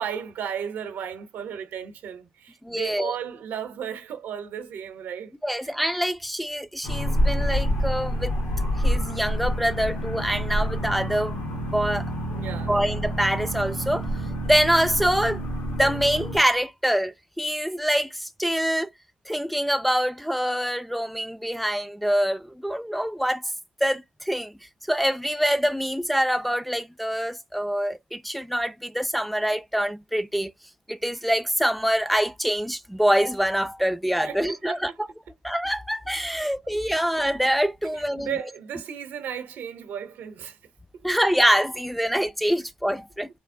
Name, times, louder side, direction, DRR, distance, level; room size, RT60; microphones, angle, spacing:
voice 1, 0.0-5.7 12.3-12.7 34.2-35.0 36.4-36.5 37.8-40.6 40.9-41.0, right 8 dB, 80° right, 0.7 m, -35 dB
voice 2, 2.6-3.1 5.4-8.3 8.8-12.1 12.7-14.1 14.4-15.4 15.7-18.9 19.3-23.4 23.8-24.5 24.9-30.5 30.9-35.1 35.4-38.4 41.0-43.3, equal, ahead, 0.3 m, -25 dB
sound 1, 6.8-16.4, equal, 85° left, 1.4 m, -27 dB
3.2 x 2.0 x 2.5 m
supercardioid pair, 60°, 3 cm